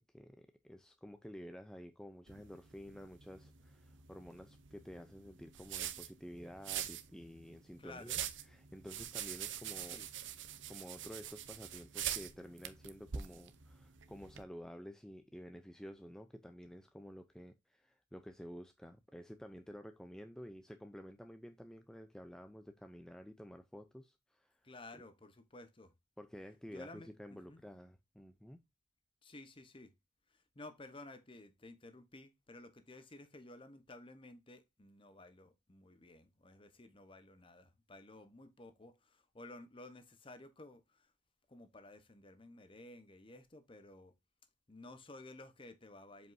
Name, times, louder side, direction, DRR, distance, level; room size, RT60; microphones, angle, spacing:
voice 1, 0.0-10.0 10.7-24.6 24.9-25.0 26.2-28.6, equal, 5° left, 0.4 m, -51 dB
sound 1, 2.3-14.4, right 10 dB, 80° right, 0.8 m, -45 dB
voice 2, 7.8-8.2 9.8-10.1 24.6-25.9 26.7-27.6 29.2-29.9 30.3-41.1 41.5-44.1 44.7-46.3, left 2 dB, 30° left, 1.0 m, -54 dB
7.7 x 5.3 x 2.6 m
head